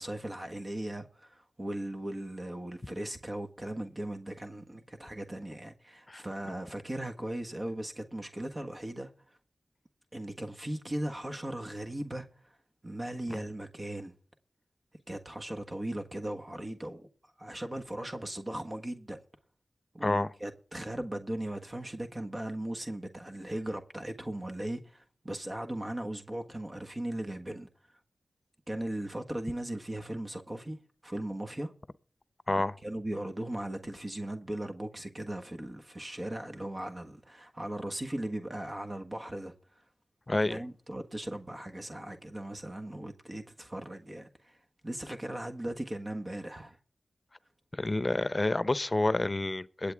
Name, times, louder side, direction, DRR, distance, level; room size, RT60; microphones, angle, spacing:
voice 1, 0.0-9.1 10.1-12.6 12.8-14.1 15.1-17.1 17.4-19.2 19.9-28.0 28.7-30.8 31.0-31.7 32.5-39.8 40.4-46.8, right 1 dB, 35° right, 1.4 m, -38 dB
voice 2, 40.3-40.6 47.7-49.9, left 2 dB, 35° left, 0.8 m, -29 dB
22.0 x 8.4 x 3.5 m
cardioid pair, 50°, 0 cm